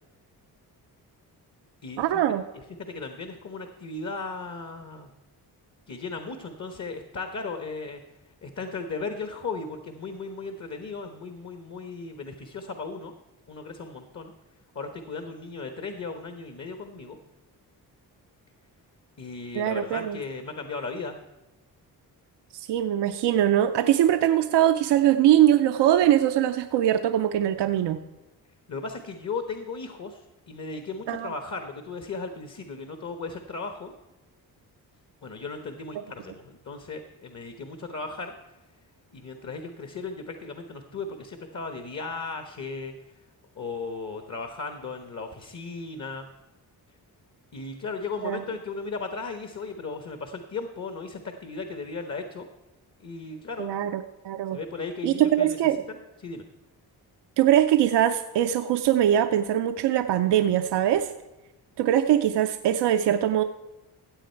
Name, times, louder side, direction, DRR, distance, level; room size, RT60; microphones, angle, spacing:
voice 1, 2.0-2.4 19.5-20.2 22.5-28.0 31.1-31.3 48.2-48.4 53.6-54.6 55.0-55.8 57.4-61.1 61.8-63.4, right 11 dB, 90° right, 8 dB, 0.6 m, -22 dB
voice 2, 2.8-5.1 5.9-8.0 8.4-13.1 13.5-14.3 14.7-17.2 19.2-21.2 28.7-33.9 35.2-38.3 39.1-42.9 43.6-46.2 47.5-52.5 53.0-53.7 54.5-55.6 55.9-56.4, left 4 dB, 45° left, 7 dB, 1.2 m, -36 dB
15.5 x 7.8 x 4.5 m, 1.0 s
cardioid pair, 70°, 40 cm